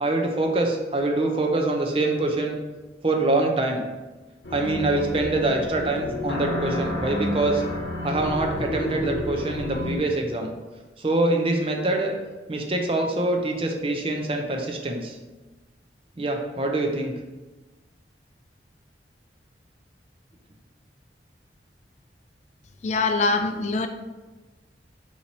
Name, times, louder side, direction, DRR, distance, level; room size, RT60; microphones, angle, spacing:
voice 1, 0.0-2.6 3.0-3.8 4.5-7.6 8.0-10.5 11.0-12.2 12.5-15.2 16.2-17.1, right 2 dB, 30° right, 2 dB, 0.5 m, -24 dB
sound 1, 4.4-10.0, left 1 dB, 75° left, 0.9 m, -30 dB
voice 2, 22.8-23.9, left 3 dB, 40° left, 6 dB, 0.3 m, -23 dB
4.5 x 2.8 x 4.0 m, 1.2 s
head